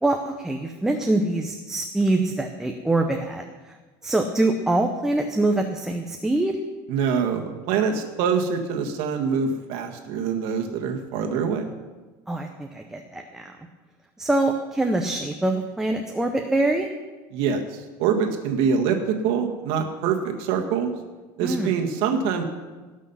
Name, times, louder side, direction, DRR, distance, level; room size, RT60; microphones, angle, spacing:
voice 1, 0.0-3.4 4.0-6.6 12.3-13.5 14.2-16.9 21.4-21.7, right 2 dB, 5° right, 3 dB, 0.6 m, -24 dB
voice 2, 6.9-11.7 17.3-20.9 21.4-22.4, right 6 dB, 60° right, 4 dB, 1.6 m, -25 dB
18.0 x 6.3 x 5.6 m, 1.3 s
cardioid pair, 165°, 10 cm